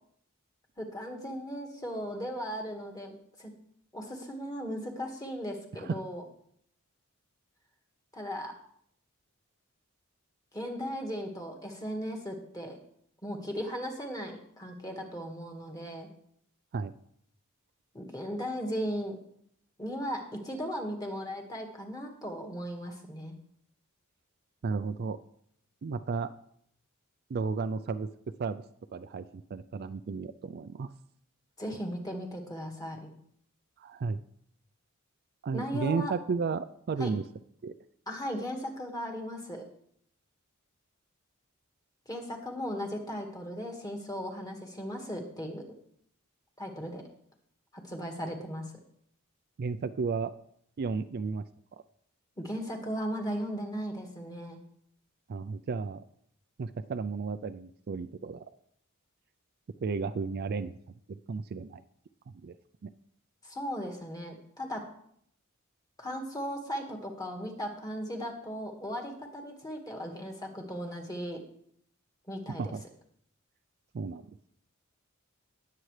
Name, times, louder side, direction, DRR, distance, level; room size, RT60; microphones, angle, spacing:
voice 1, 0.8-3.5 3.9-6.2 8.1-8.5 10.5-12.8 13.2-16.1 17.9-19.2 19.8-23.3 31.6-33.1 35.5-36.1 37.0-37.1 38.1-39.6 42.1-45.6 46.6-47.0 47.7-48.7 52.4-54.6 63.4-64.8 66.0-71.4 72.3-72.7, equal, 15° left, 3 dB, 1.7 m, -37 dB
voice 2, 24.6-25.2 25.8-26.3 27.3-28.1 28.4-28.6 28.9-30.9 33.8-34.2 35.4-37.2 37.6-37.7 49.6-50.4 50.8-51.4 51.7-51.8 55.3-56.0 56.6-58.4 59.8-60.7 61.1-61.8 62.3-62.6 62.8-62.9 72.6-72.8 73.9-74.2, right 4 dB, 45° right, 12 dB, 0.4 m, -33 dB
19.0 x 7.6 x 3.3 m, 0.68 s
head